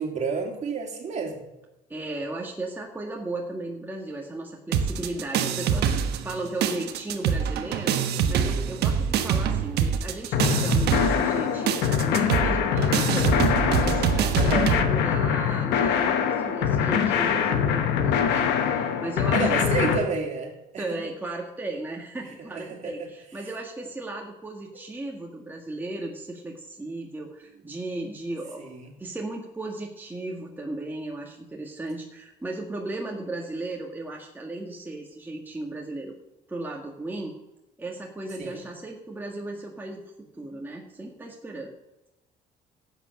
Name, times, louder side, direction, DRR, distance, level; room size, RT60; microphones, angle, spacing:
voice 1, 0.0-1.4 5.9-6.0 8.4-8.6 14.3-14.7 19.3-20.8 22.5-22.9 28.6-28.9 38.4-38.6, right 4 dB, 45° right, 2 dB, 2.9 m, -30 dB
voice 2, 1.9-8.0 8.3-13.4 13.7-20.0 20.8-28.6 29.0-36.2 36.5-37.4 37.8-41.7, right 2 dB, 10° right, -1 dB, 1.8 m, -36 dB
sound 1, 4.7-6.3 6.6-14.8, right 7 dB, 75° right, 1.2 m, -25 dB
sound 2, 10.3-20.0, left 8 dB, 85° left, 1.3 m, -24 dB
12.0 x 8.2 x 6.5 m, 0.98 s
cardioid pair, 110°, 17 cm